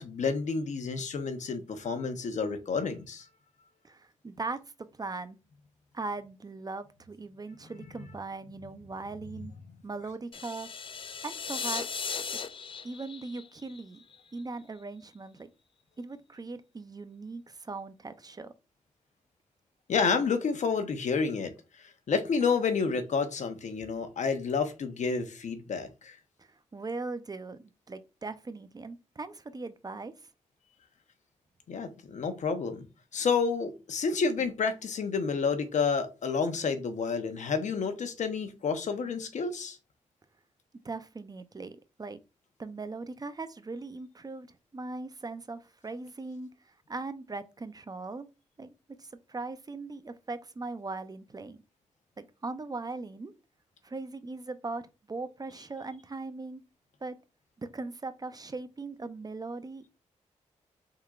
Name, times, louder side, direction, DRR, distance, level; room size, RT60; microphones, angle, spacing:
voice 1, 0.0-3.3 19.9-26.2 31.7-32.9 33.1-39.8, left 5 dB, 65° left, 0.9 m, -30 dB
voice 2, 3.8-4.6 5.0-5.4 5.9-9.5 9.8-10.7 11.2-12.0 12.3-12.4 12.8-14.0 14.3-15.5 16.0-18.5 26.4-30.1 40.8-42.2 42.6-48.3 48.6-48.7 49.0-51.6 52.2-53.3 53.8-56.6 57.0-57.2 57.6-59.9, right 3 dB, 30° right, 0.5 m, -39 dB
sound 1, 10.3-14.4, left 6 dB, 40° left, 0.4 m, -37 dB
4.4 x 3.8 x 2.4 m
cardioid pair, 60°, 13 cm